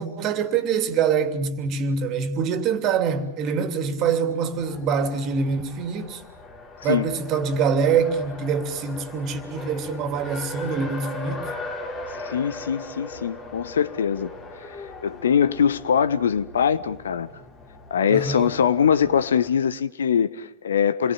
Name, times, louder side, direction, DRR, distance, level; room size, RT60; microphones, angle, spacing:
voice 1, 0.0-6.2 6.8-11.5 18.1-18.5, right 6 dB, 35° right, 3.0 m, -25 dB
Race car auto racing, 4.5-19.5, left 2 dB, 30° left, 7.2 m, -39 dB
voice 2, 12.2-14.3 15.0-17.3 17.9-21.1, left 8 dB, 65° left, 1.2 m, -22 dB
28.5 x 23.0 x 9.0 m
figure-of-eight pair, 90°, 0 cm